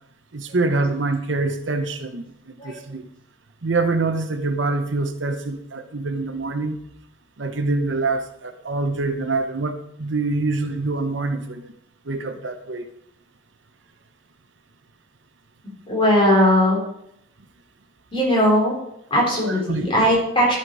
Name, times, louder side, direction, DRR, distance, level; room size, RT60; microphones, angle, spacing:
voice 1, 0.3-3.1 3.6-6.8 7.4-11.7 12.1-12.9 19.4-19.9, right 3 dB, 70° right, 0.9 m, -25 dB
voice 2, 15.9-16.8 18.1-18.7 19.1-20.5, equal, 30° left, 4.1 m, -18 dB
12.5 x 5.9 x 4.7 m
head